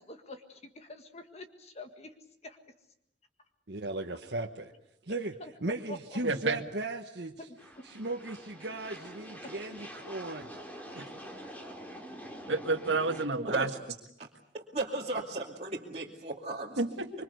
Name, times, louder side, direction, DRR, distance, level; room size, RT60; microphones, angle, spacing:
voice 1, 0.0-2.1 2.4-2.6 5.1-5.5 5.9-6.2 7.5-7.8 9.4-9.5, left 1 dB, 35° left, 6 dB, 1.8 m, -46 dB
voice 2, 3.7-4.7 5.0-5.3 5.6-7.5 7.8-10.5, right 2 dB, 65° right, 1 dB, 1.4 m, -37 dB
voice 3, 6.2-6.6 11.0-11.1 12.5-13.7 16.8-17.1, right 3 dB, 90° right, 7 dB, 2.0 m, -29 dB
sound 1, 7.6-13.3, equal, 10° left, 3.8 m, -46 dB
voice 4, 13.5-13.8 14.2-14.3 14.5-16.8, right 2 dB, 35° right, -4 dB, 2.5 m, -35 dB
26.0 x 24.0 x 8.1 m, 0.78 s
head